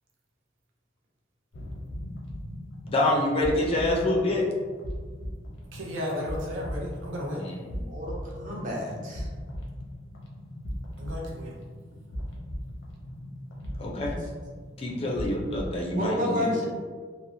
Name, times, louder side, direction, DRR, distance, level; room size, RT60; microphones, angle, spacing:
sound 1, 1.5-15.8, equal, 85° left, 0.6 m, -38 dB
voice 1, 2.9-4.4 7.4-7.6 13.8-14.1 14.8-16.6, left 1 dB, 30° left, -2 dB, 0.3 m, -26 dB
voice 2, 5.7-7.5 11.0-11.6, left 1 dB, 85° right, -2 dB, 0.5 m, -34 dB
voice 3, 7.7-9.3 14.1-14.2 15.9-16.7, left 1 dB, 45° right, -3 dB, 0.6 m, -31 dB
2.8 x 2.0 x 2.6 m, 1.6 s
head